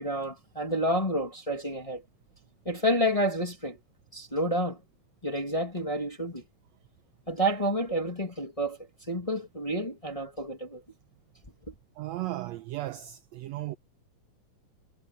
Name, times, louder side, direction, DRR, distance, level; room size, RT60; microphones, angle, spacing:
voice 1, 0.0-2.0 2.6-3.8 4.1-4.8 5.2-6.4 7.3-8.8 9.1-10.8, equal, 15° left, 1.6 m, -29 dB
voice 2, 12.0-13.8, right 16 dB, 80° right, 1.6 m, -35 dB
omnidirectional pair, 3.6 m